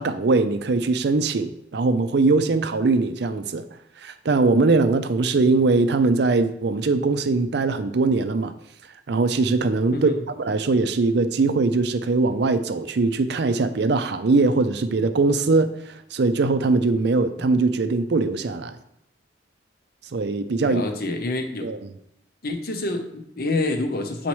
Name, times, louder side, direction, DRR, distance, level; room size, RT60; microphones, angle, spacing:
voice 1, 0.0-3.7 4.0-8.5 9.1-10.1 10.4-18.8 20.1-20.8 21.6-21.8, right 3 dB, 60° right, 10 dB, 0.5 m, -21 dB
voice 2, 9.9-10.2 20.6-21.7 22.4-24.3, left 2 dB, 50° left, 5 dB, 0.7 m, -27 dB
8.3 x 4.2 x 3.1 m, 0.79 s
head